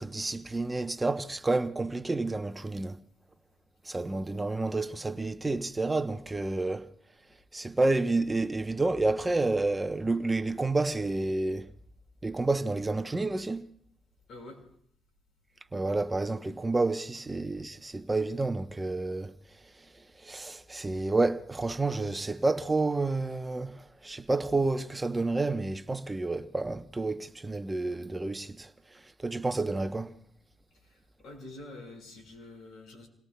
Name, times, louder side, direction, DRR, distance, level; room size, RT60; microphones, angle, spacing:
voice 1, 0.0-3.0 3.8-6.9 7.5-11.7 12.2-13.6 15.7-19.3 19.6-30.1, right 2 dB, 20° right, 0.8 m, -30 dB
voice 2, 14.3-14.6 30.8-33.1, left 2 dB, 75° left, 5.1 m, -47 dB
30.0 x 20.0 x 2.2 m
cardioid pair, 90°, 0 cm